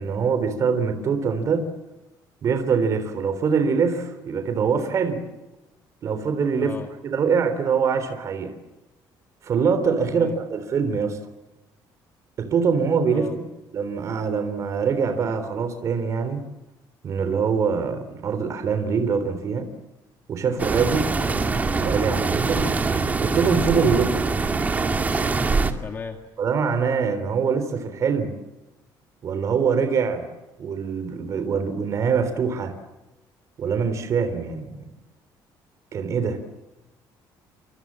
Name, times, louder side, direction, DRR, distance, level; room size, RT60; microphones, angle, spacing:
voice 1, 0.0-1.7 2.4-5.2 6.0-6.7 7.0-8.5 9.4-11.2 12.4-13.3 13.7-16.4 17.0-19.7 20.3-21.1 21.7-22.7 23.2-24.1 26.4-28.3 29.2-30.3 30.6-32.7 33.6-34.9 35.9-36.4, right 6 dB, 40° right, 9 dB, 3.5 m, -23 dB
voice 2, 6.6-6.9 10.1-10.4 13.1-13.4 20.4-20.7 23.8-24.1 25.8-26.2, left 5 dB, 25° left, 4 dB, 2.2 m, -36 dB
sound 1, 20.6-25.7, right 4 dB, 20° right, 2.2 m, -23 dB
29.5 x 26.5 x 7.6 m, 1.0 s
cardioid pair, 170°, 8 cm